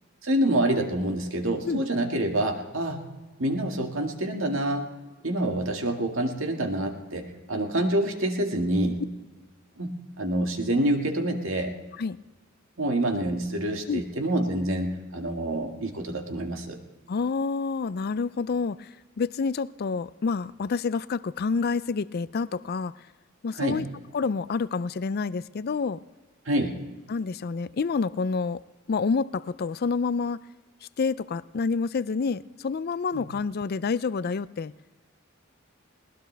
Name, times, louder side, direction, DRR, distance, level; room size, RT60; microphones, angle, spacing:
voice 1, 0.2-3.1 3.4-4.9 5.2-9.0 9.8-11.7 12.8-16.8 23.6-23.9 26.5-26.8 33.1-33.2, right 1 dB, 70° right, 3 dB, 2.0 m, -27 dB
voice 2, 17.1-18.9 19.2-22.9 23.4-23.9 24.1-26.0 27.1-28.6 28.9-30.4 31.0-34.7, left 4 dB, 50° left, 17 dB, 0.4 m, -28 dB
20.5 x 19.0 x 3.4 m, 1.2 s
head